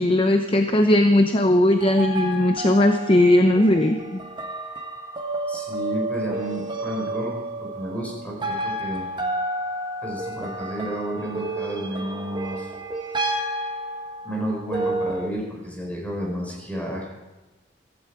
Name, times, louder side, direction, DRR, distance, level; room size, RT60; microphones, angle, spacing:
voice 1, 0.0-4.2, left 1 dB, 30° left, 6 dB, 0.8 m, -18 dB
sound 1, 1.8-15.3, right 1 dB, 25° right, 1.6 m, -31 dB
voice 2, 5.5-9.1 10.0-12.7 14.2-17.1, right 1 dB, 10° left, -2 dB, 5.1 m, -31 dB
15.0 x 15.0 x 4.8 m, 1.1 s
head